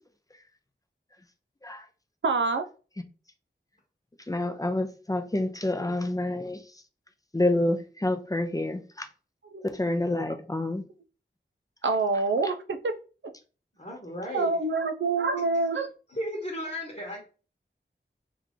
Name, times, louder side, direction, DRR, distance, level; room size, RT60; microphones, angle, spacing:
voice 1, 2.2-2.7 9.5-9.6 11.8-12.9 14.3-15.9, right 3 dB, 70° right, 0.5 m, -26 dB
voice 2, 4.3-6.6 7.3-8.8 9.7-10.8, left 1 dB, 15° left, 0.5 m, -28 dB
voice 3, 13.8-14.5 16.1-17.2, equal, 35° left, 1.1 m, -34 dB
2.9 x 2.5 x 3.6 m
wide cardioid pair, 60°, 20 cm